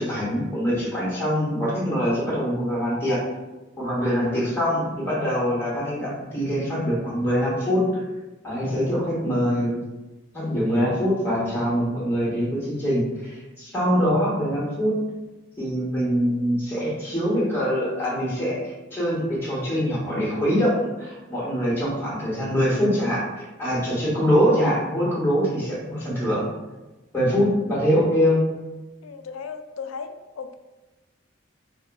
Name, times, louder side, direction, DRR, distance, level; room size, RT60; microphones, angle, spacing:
voice 1, 0.0-3.2 3.8-8.0 8.4-9.7 10.3-14.9 15.6-26.4 27.1-28.4, equal, 10° left, -8 dB, 1.1 m, -24 dB
voice 2, 8.6-8.9 13.8-14.0 23.9-24.1 29.0-30.5, left 5 dB, 85° left, 9 dB, 0.3 m, -37 dB
2.9 x 2.3 x 3.4 m, 1.1 s
head